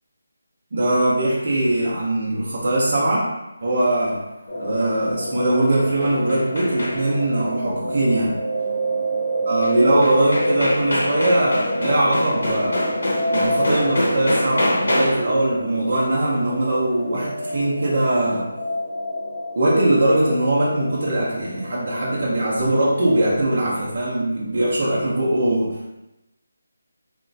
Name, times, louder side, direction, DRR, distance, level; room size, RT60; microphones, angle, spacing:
voice 1, 0.7-3.3 3.6-4.2 4.6-8.4 9.5-13.0 13.3-18.5 19.6-25.9, right 1 dB, 35° right, -5 dB, 0.5 m, -21 dB
sound 1, 4.5-23.6, right 1 dB, 20° left, 0.6 m, -29 dB
sound 2, 5.5-7.3 9.6-9.7 10.0-15.4, left 1 dB, 65° left, 0.8 m, -26 dB
3.0 x 2.1 x 2.6 m, 0.94 s
figure-of-eight pair, 180°, 0 cm